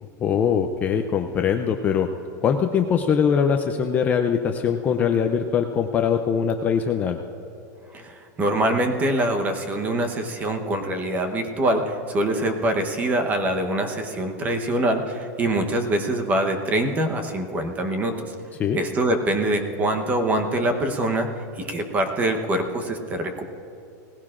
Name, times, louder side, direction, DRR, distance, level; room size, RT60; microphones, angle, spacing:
voice 1, 0.0-2.1 2.4-7.2 18.6-18.8, left 7 dB, 15° left, 5 dB, 0.4 m, -22 dB
voice 2, 7.9-18.3 18.7-21.3 21.6-23.5, right 1 dB, 15° right, 5 dB, 0.9 m, -24 dB
18.5 x 16.5 x 2.5 m, 2.8 s
supercardioid pair, 165°, 10 cm